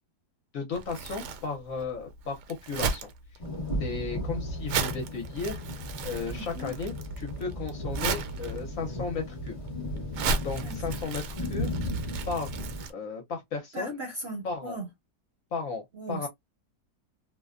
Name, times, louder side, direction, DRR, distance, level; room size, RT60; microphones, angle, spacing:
voice 1, 0.5-3.1 3.8-5.6 6.0-9.6 10.4-11.7 12.3-12.5 12.9-14.0 14.4-14.8 15.5-16.3, left 4 dB, 60° left, 1.0 m, -34 dB
Crumpling crinkling, 0.7-12.9, right 4 dB, 75° right, 1.1 m, -36 dB
sound 1, 3.4-12.9, equal, 30° left, 0.6 m, -35 dB
voice 2, 6.3-6.7 10.6-10.7 13.7-14.9 15.9-16.3, right 1 dB, 50° right, 0.8 m, -37 dB
2.7 x 2.1 x 2.4 m
omnidirectional pair, 1.8 m